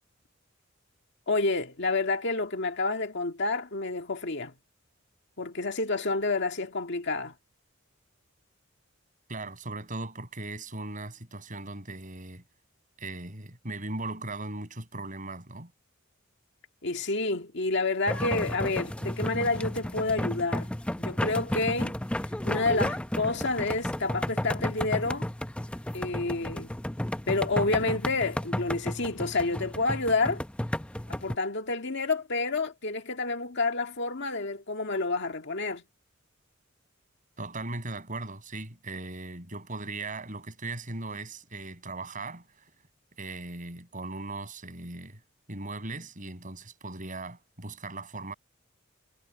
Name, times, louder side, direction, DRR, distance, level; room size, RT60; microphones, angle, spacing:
voice 1, 1.3-4.5 5.4-7.3 16.8-20.7 21.0-21.9 22.4-25.3 25.9-26.7 27.3-30.4 31.1-35.8, left 3 dB, 60° left, 2.0 m, -29 dB
voice 2, 9.3-12.4 13.0-15.7 37.4-42.7 43.2-45.2 45.5-48.3, right 2 dB, 40° right, 7.4 m, -38 dB
sound 1, 18.1-31.4, left 1 dB, 5° left, 0.6 m, -32 dB
head